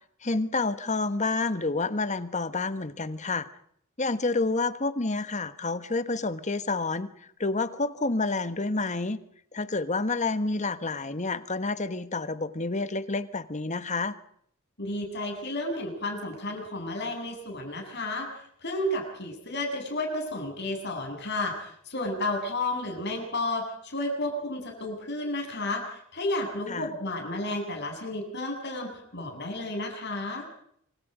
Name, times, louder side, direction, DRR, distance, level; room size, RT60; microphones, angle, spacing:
voice 1, 0.2-3.5 4.0-7.1 7.4-9.2 9.5-14.1 26.7-26.9, left 3 dB, 35° left, 12 dB, 1.4 m, -29 dB
voice 2, 14.8-30.5, left 1 dB, 55° left, 2 dB, 7.8 m, -32 dB
26.5 x 25.5 x 5.1 m, 0.67 s
head